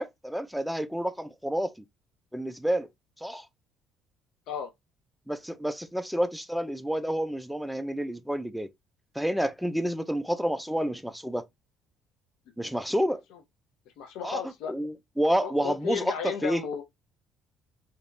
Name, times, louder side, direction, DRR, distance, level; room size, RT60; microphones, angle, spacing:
voice 1, 0.0-1.7 2.3-2.9 3.2-3.5 5.3-8.7 9.2-11.5 12.6-13.2 14.2-16.6, equal, ahead, 0.4 m, -29 dB
voice 2, 14.0-14.7 15.4-16.8, left 8 dB, 85° left, 0.6 m, -34 dB
3.4 x 2.8 x 2.5 m
cardioid pair, 135°, 0 cm